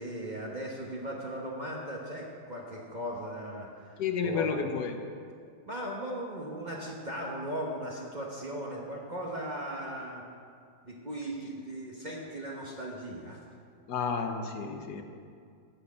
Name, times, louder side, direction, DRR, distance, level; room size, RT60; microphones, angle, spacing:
voice 1, 0.0-4.8 5.6-10.2 10.8-13.4, right 1 dB, 30° right, -2 dB, 0.9 m, -38 dB
voice 2, 4.0-5.0 13.9-15.0, left 5 dB, 60° left, 5 dB, 1.3 m, -31 dB
9.9 x 6.4 x 8.4 m, 2.3 s
omnidirectional pair, 2.1 m